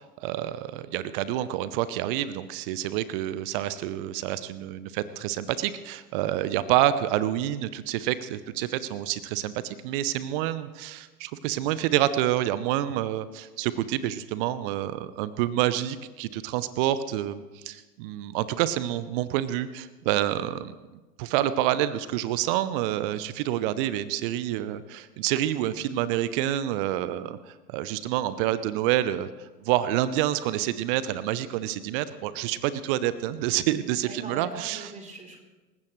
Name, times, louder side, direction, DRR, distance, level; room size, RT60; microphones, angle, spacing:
voice 1, 0.0-20.7 21.2-34.9, right 13 dB, 35° right, 15 dB, 0.7 m, -28 dB
voice 2, 33.9-35.4, right 2 dB, 15° right, 2 dB, 3.6 m, -41 dB
27.5 x 15.0 x 3.2 m, 1.2 s
figure-of-eight pair, 100°, 49 cm